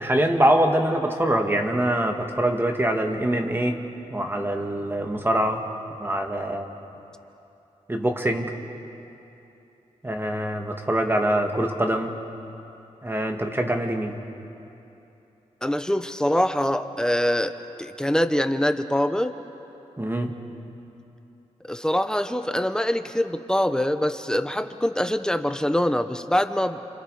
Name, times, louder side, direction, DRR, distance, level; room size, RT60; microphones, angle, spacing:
voice 1, 0.0-3.8 4.1-5.6 6.0-6.7 7.9-8.5 10.0-12.1 13.0-14.2 20.0-20.3, right 1 dB, 15° right, 3 dB, 2.1 m, -24 dB
voice 2, 15.6-17.5 17.8-19.3 21.6-26.8, left 1 dB, 5° left, 9 dB, 1.1 m, -24 dB
29.5 x 27.0 x 5.0 m, 2.9 s
cardioid pair, 80°, 13 cm